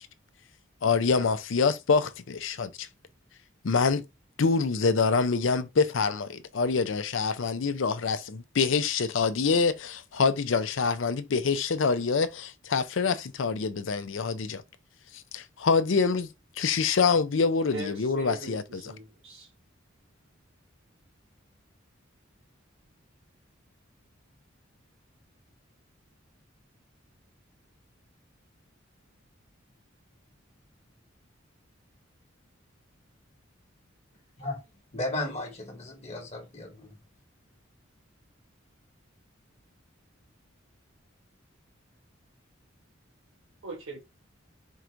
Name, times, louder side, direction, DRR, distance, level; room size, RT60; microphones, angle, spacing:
voice 1, 0.8-2.9 3.6-4.0 4.4-14.6 15.3-16.3 16.6-18.9, left 5 dB, 70° left, 0.5 m, -26 dB
voice 2, 17.7-19.5 43.6-44.0, right 3 dB, 70° right, 0.9 m, -40 dB
voice 3, 34.9-37.0, left 2 dB, 30° left, 1.1 m, -35 dB
4.6 x 2.6 x 4.4 m
head